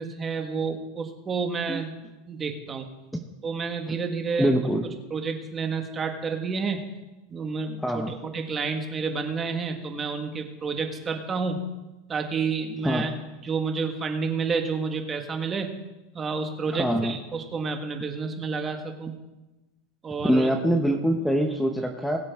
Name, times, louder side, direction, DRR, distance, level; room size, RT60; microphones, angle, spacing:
voice 1, 0.0-1.9 2.3-2.9 3.4-4.5 5.1-6.9 7.3-11.7 12.1-13.1 13.4-15.7 16.1-19.1 20.0-20.5, right 5 dB, 20° right, 5 dB, 1.5 m, -30 dB
voice 2, 4.4-4.8 7.8-8.1 12.8-13.0 16.7-17.1 20.2-22.2, equal, ahead, 4 dB, 0.9 m, -24 dB
21.0 x 7.4 x 3.6 m, 1.1 s
supercardioid pair, 135°, 0 cm